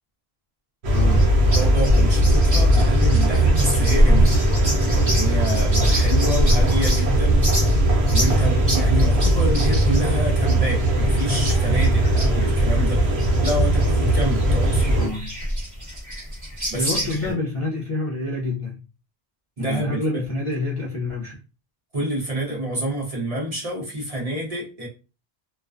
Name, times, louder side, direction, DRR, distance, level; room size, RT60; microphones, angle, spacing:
sound 1, 0.8-15.1, right 1 dB, 85° right, 0.9 m, -19 dB
voice 1, 0.9-1.4 14.9-15.4 16.7-18.7 19.6-21.4, left 2 dB, 45° left, 0.4 m, -27 dB
sound 2, 0.9-17.3, equal, 15° right, 1.1 m, -26 dB
voice 2, 1.5-4.4 4.8-7.4 8.1-13.1 13.4-14.9 16.7-17.4 19.6-20.2 21.9-24.9, right 1 dB, 40° right, 0.8 m, -28 dB
2.4 x 2.2 x 2.4 m
omnidirectional pair, 1.1 m